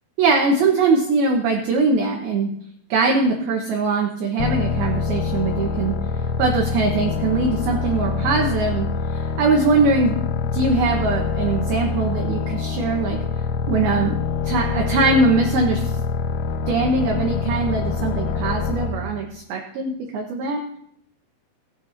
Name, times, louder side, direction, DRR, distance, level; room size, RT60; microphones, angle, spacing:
voice 1, 0.2-2.5 2.9-5.9 6.4-8.9 9.1-10.2 10.5-13.2 13.7-14.1 14.4-15.8 16.7-20.6, right 3 dB, 70° right, 1 dB, 2.5 m, -21 dB
sound 1, 4.4-19.1, left 5 dB, 80° left, 2.6 m, -25 dB
20.5 x 7.3 x 2.6 m, 0.70 s
omnidirectional pair, 5.4 m